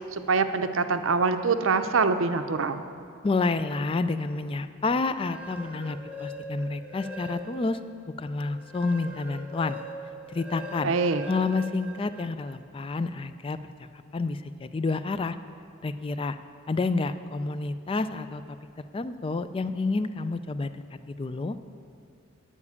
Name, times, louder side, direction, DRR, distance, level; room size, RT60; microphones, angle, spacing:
voice 1, 0.1-2.8 10.8-11.2, right 4 dB, 70° right, 9 dB, 0.6 m, -24 dB
voice 2, 3.2-7.8 8.2-9.8 10.3-10.9 11.3-13.6 14.1-15.4 15.8-16.4 16.7-18.4 18.9-20.8 21.1-21.6, left 3 dB, 25° left, 12 dB, 0.3 m, -29 dB
sound 1, 5.2-7.8 8.2-12.5, equal, 5° right, 0.8 m, -41 dB
9.7 x 7.2 x 8.3 m, 2.4 s
head